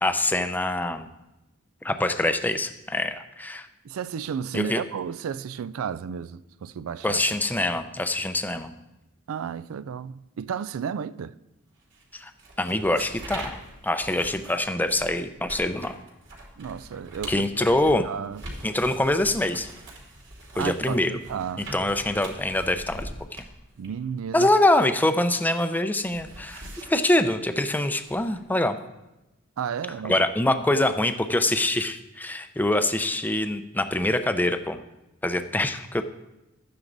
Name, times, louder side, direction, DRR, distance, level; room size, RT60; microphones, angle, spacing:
voice 1, 0.0-1.1 1.8-3.7 4.5-4.8 7.0-8.7 12.1-12.3 12.6-13.6 13.8-15.9 17.3-18.1 18.6-19.7 20.6-21.1 21.7-23.4 24.3-28.8 30.0-34.8 35.2-36.0, left 1 dB, 10° left, 0.5 m, -24 dB
voice 2, 3.8-7.4 9.3-11.3 16.6-17.4 18.0-18.4 20.5-21.7 23.8-24.5 29.6-30.2, right 7 dB, 80° right, 0.4 m, -33 dB
sound 1, 11.9-25.4 25.7-28.4, right 1 dB, 60° right, 2.7 m, -43 dB
12.5 x 9.2 x 3.9 m
head